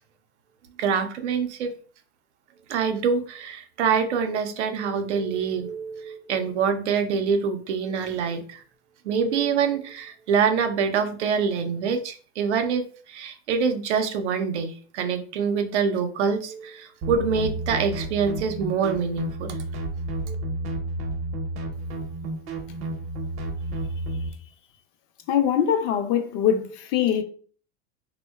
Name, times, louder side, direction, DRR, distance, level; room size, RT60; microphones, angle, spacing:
voice 1, 0.8-1.7 2.7-8.6 9.0-19.6 20.3-20.4, right 6 dB, 90° right, 0.5 m, -25 dB
sound 1, 17.0-24.3, right 1 dB, 40° right, 0.6 m, -31 dB
voice 2, 25.3-27.2, left 9 dB, 45° left, 0.4 m, -22 dB
2.7 x 2.1 x 2.2 m
hypercardioid pair, 105°, 33 cm